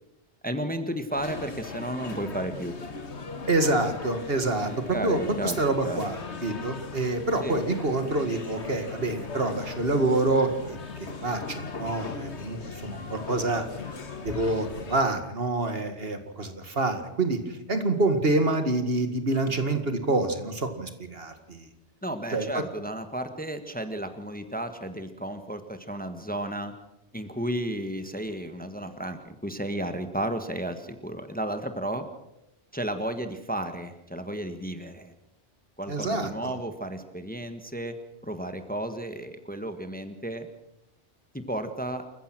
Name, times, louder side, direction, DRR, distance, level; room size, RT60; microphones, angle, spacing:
voice 1, 0.4-2.7 4.7-6.0 7.4-7.6 22.0-26.7 27.1-32.1 32.7-35.1 35.8-38.0 38.2-40.5 41.3-42.0, right 1 dB, 10° left, 8 dB, 1.4 m, -33 dB
sound 1, 1.1-15.0, left 4 dB, 75° left, 2.1 m, -38 dB
voice 2, 3.5-13.6 14.2-21.7 22.3-22.5 35.9-36.6, right 2 dB, 60° right, 7 dB, 2.2 m, -27 dB
28.5 x 15.0 x 6.1 m, 0.87 s
omnidirectional pair, 1.1 m